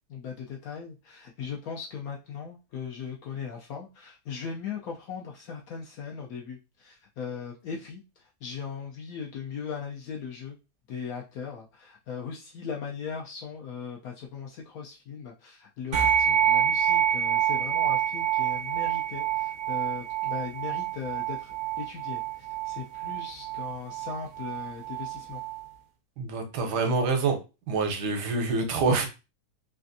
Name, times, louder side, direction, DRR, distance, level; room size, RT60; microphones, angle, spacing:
voice 1, 0.1-8.0 8.4-10.6 10.9-25.4, left 6 dB, 70° left, -1 dB, 0.9 m, -38 dB
sound 1, 15.9-25.6, right 10 dB, 50° right, 0.7 m, -27 dB
voice 2, 26.2-27.4 27.7-29.1, right 4 dB, 80° right, 5 dB, 1.3 m, -26 dB
3.3 x 2.4 x 2.6 m, 0.29 s
omnidirectional pair, 1.8 m